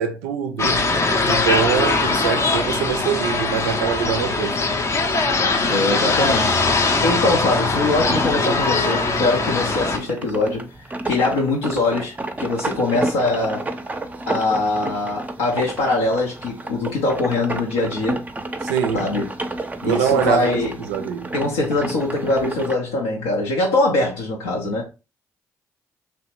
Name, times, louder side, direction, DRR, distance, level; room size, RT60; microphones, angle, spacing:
voice 1, 0.0-4.6 18.6-19.1 19.8-21.3, right 8 dB, 80° right, 0.4 m, -24 dB
sound 1, 0.6-10.0, left 3 dB, 35° left, 0.5 m, -21 dB
voice 2, 5.7-10.7 11.0-13.7 14.3-18.2 18.9-19.3 19.8-20.8 21.3-24.9, left 2 dB, 80° left, 0.5 m, -22 dB
sound 2, 6.4-22.8, right 2 dB, 20° right, 0.5 m, -31 dB
2.8 x 2.1 x 2.9 m
hypercardioid pair, 45°, 8 cm